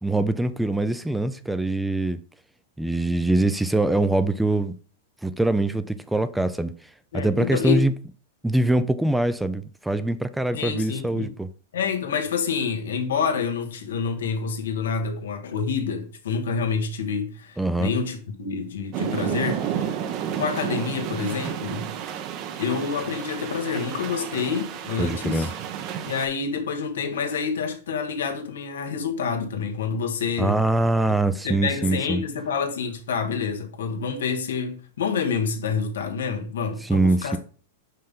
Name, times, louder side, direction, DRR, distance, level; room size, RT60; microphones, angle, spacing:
voice 1, 0.0-2.2 2.8-4.7 5.2-6.7 7.1-7.9 8.4-11.5 17.6-17.9 25.0-25.5 30.4-32.2 36.8-37.4, right 2 dB, 5° right, 0.4 m, -23 dB
voice 2, 7.1-7.8 10.5-11.3 11.7-20.0 20.3-21.9 22.6-25.5 26.0-30.6 31.4-37.4, left 6 dB, 90° left, 1.4 m, -28 dB
sound 1, 18.9-26.3, right 9 dB, 40° right, 0.8 m, -31 dB
5.5 x 5.4 x 3.7 m
hypercardioid pair, 135°, 0 cm